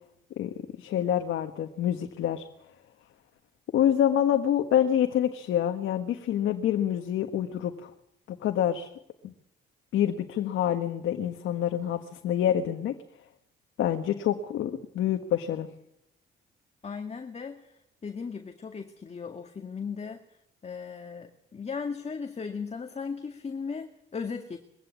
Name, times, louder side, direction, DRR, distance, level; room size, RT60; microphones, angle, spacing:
voice 1, 0.4-2.5 3.7-7.9 8.3-8.9 9.2-9.3 9.9-12.9 13.8-15.7, left 10 dB, 80° left, 5 dB, 1.6 m, -27 dB
voice 2, 16.8-17.7 18.0-20.2 20.6-24.6, left 5 dB, 35° left, 5 dB, 2.0 m, -37 dB
22.0 x 15.5 x 8.4 m, 0.77 s
cardioid pair, 90°, 20 cm